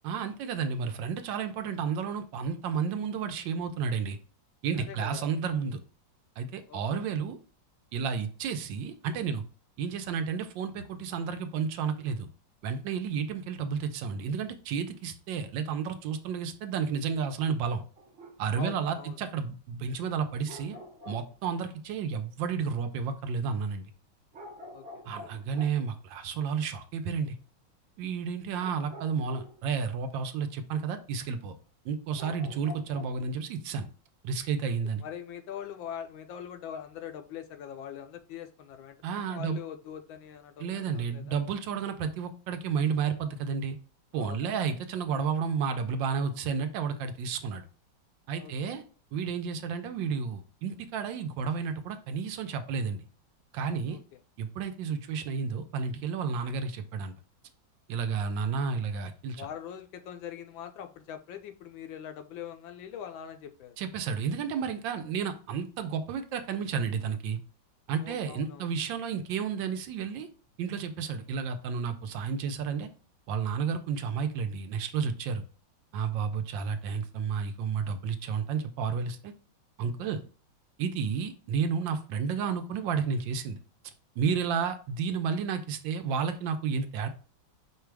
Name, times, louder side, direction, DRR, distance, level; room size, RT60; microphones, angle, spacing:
voice 1, 0.0-4.2 4.6-5.8 6.4-7.4 7.9-9.4 9.8-12.3 12.6-17.8 18.4-20.8 21.1-23.8 25.1-27.4 28.0-31.6 31.8-33.9 34.2-35.0 39.0-39.6 40.6-43.8 44.1-47.6 48.3-48.8 49.1-53.0 53.5-54.0 54.4-57.1 57.9-59.5 63.8-67.4 67.9-70.3 70.6-72.9 73.3-75.4 75.9-79.3 79.8-80.2 80.8-83.6 84.2-87.1, right 6 dB, 75° right, 8 dB, 1.3 m, -31 dB
voice 2, 4.8-5.3 6.7-7.0 18.5-19.2 24.7-25.0 34.7-41.4 44.1-44.6 48.4-48.8 53.9-54.0 58.0-58.1 59.4-63.8 68.0-68.7, left 9 dB, 80° left, 8 dB, 1.3 m, -43 dB
sound 1, 18.0-18.4 20.4-21.4 23.6-23.7 24.3-25.9 28.6-30.3 30.7-31.1 31.4-31.5 32.1-33.1, left 1 dB, 50° right, 0.9 m, -47 dB
5.0 x 2.3 x 4.6 m, 0.38 s
omnidirectional pair, 2.1 m